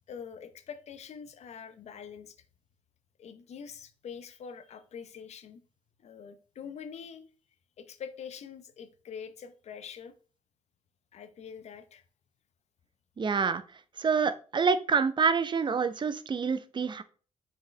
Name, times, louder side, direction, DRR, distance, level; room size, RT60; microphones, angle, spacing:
voice 1, 0.1-2.4 3.2-5.6 6.0-7.3 7.8-10.1 11.1-12.0, left 7 dB, 70° left, 11 dB, 0.8 m, -44 dB
voice 2, 13.2-13.6 14.0-17.0, right 5 dB, 40° right, 11 dB, 0.7 m, -27 dB
6.5 x 4.9 x 3.2 m, 0.39 s
cardioid pair, 75°, 12 cm